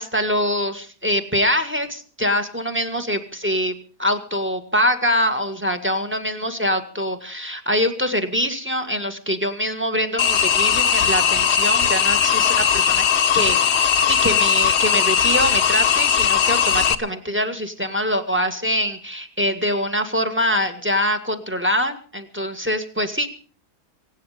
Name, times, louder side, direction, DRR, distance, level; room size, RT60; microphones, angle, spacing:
voice 1, 0.0-13.0 13.3-23.3, equal, 10° right, 8 dB, 1.7 m, -24 dB
sound 1, 10.2-16.9, left 8 dB, 50° left, 1.1 m, -18 dB
24.5 x 9.4 x 5.1 m, 0.40 s
omnidirectional pair, 1.6 m